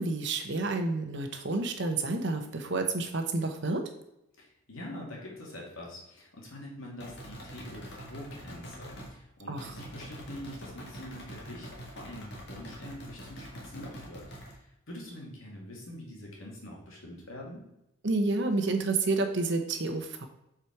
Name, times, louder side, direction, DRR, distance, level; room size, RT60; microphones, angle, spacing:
voice 1, 0.0-3.9 9.5-9.7 18.0-20.3, right 3 dB, 55° right, 6 dB, 0.9 m, -29 dB
voice 2, 4.4-17.6, left 1 dB, 70° left, -2 dB, 2.3 m, -45 dB
sound 1, 7.0-9.2 9.6-14.6, equal, 50° left, 1.8 m, -45 dB
7.4 x 5.0 x 4.7 m, 0.84 s
head